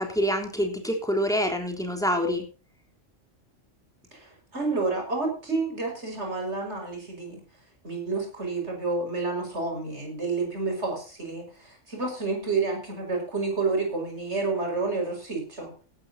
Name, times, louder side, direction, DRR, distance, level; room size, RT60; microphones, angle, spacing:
voice 1, 0.0-2.4, equal, 5° left, 3 dB, 3.5 m, -26 dB
voice 2, 4.1-7.4 7.8-15.7, right 3 dB, 60° right, 2 dB, 6.1 m, -29 dB
17.5 x 12.5 x 2.8 m, 0.36 s
omnidirectional pair, 1.3 m